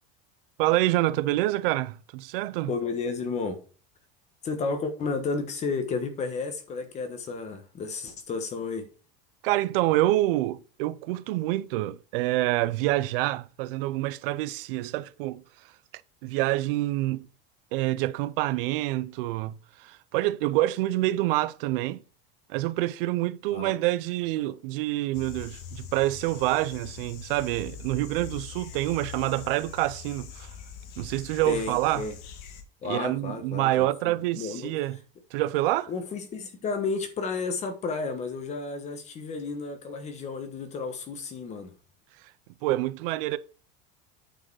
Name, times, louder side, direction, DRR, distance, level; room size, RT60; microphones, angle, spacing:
voice 1, 0.6-2.7 9.4-15.4 16.2-17.3 17.7-22.0 22.5-30.5 31.0-32.0 32.8-35.0 35.3-35.9 42.6-43.4, right 16 dB, 70° right, 0.6 m, -27 dB
voice 2, 2.7-3.6 4.4-8.9 23.5-23.7 31.5-32.1 32.8-34.7 35.9-41.7, left 4 dB, 25° left, 1.3 m, -32 dB
sound 1, 25.1-32.6, left 7 dB, 55° left, 1.7 m, -43 dB
8.9 x 4.8 x 4.7 m
cardioid pair, 170°, 29 cm